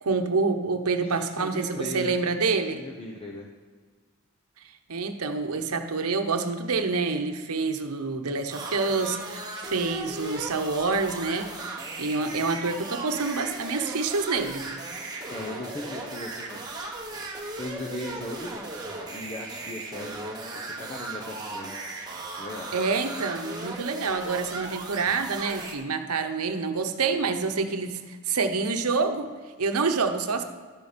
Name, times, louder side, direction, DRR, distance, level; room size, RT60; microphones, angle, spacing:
voice 1, 0.0-2.9 4.9-14.7 22.7-29.3 29.6-30.4, right 4 dB, 90° right, 7 dB, 0.9 m, -27 dB
voice 2, 1.0-2.1 2.7-3.5 15.3-16.8 17.6-18.5 19.1-21.7 22.4-22.7, left 1 dB, 25° left, -2 dB, 0.9 m, -37 dB
sound 1, 8.5-25.7, right 2 dB, 20° right, 1.3 m, -37 dB
12.5 x 6.8 x 5.1 m, 1.5 s
head